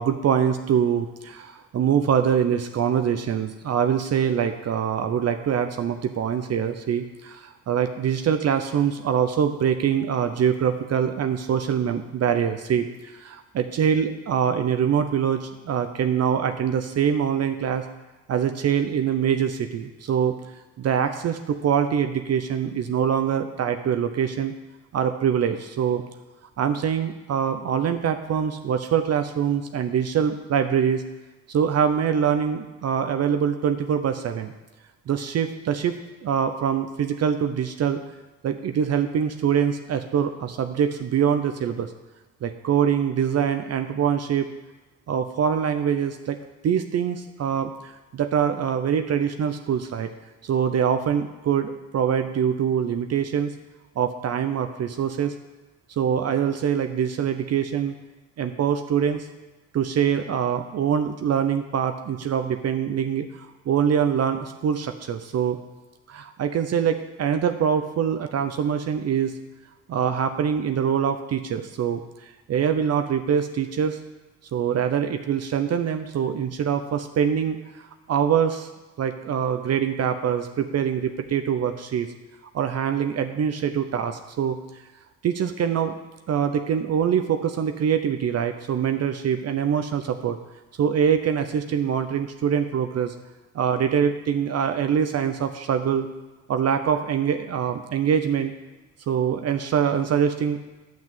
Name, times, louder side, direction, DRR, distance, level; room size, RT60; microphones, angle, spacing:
voice 1, 0.0-17.8 18.3-20.3 20.8-24.5 24.9-26.0 26.6-31.0 31.5-34.5 35.1-38.0 38.4-41.9 42.4-44.5 45.1-46.4 46.6-50.1 50.4-53.5 54.0-55.3 56.0-57.9 58.4-59.3 59.7-65.6 66.1-69.3 69.9-72.0 72.5-74.0 74.5-77.6 78.1-78.7 79.0-82.1 82.5-84.6 85.2-86.0 86.3-90.4 90.8-93.1 93.5-96.1 96.5-98.5 99.1-100.6, right 8 dB, 55° right, 7 dB, 0.7 m, -24 dB
10.0 x 6.2 x 7.4 m, 1.1 s
cardioid pair, 90°, 30 cm